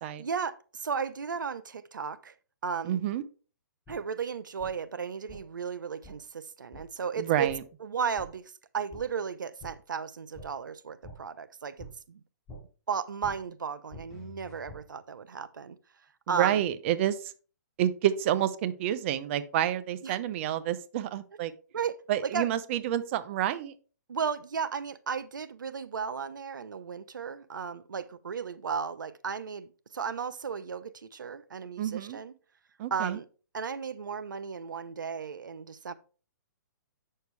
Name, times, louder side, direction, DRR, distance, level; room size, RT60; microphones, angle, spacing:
voice 1, 0.2-2.3 2.6-3.0 3.9-7.5 7.8-12.2 12.9-15.8 16.3-16.6 20.0-20.2 21.7-22.5 24.1-32.3 32.9-33.2 33.5-35.9, right 6 dB, 90° right, 0.7 m, -35 dB
voice 2, 2.8-3.2 7.2-7.6 16.3-17.3 17.8-21.5 22.1-23.7 31.8-32.2 32.8-33.2, right 11 dB, 40° right, 0.6 m, -29 dB
sound 1, 3.9-4.0 4.6-4.7 5.3-5.4 6.0-6.1 6.7-6.8 7.5-7.6 8.2-8.3 8.9-9.0 9.6-9.7 10.3-10.5 11.0-11.2 11.8-11.9 12.5-12.6 13.2-13.3 13.9-14.8, left 1 dB, 5° left, 4.6 m, -45 dB
8.1 x 6.5 x 3.2 m
hypercardioid pair, 145°, 10 cm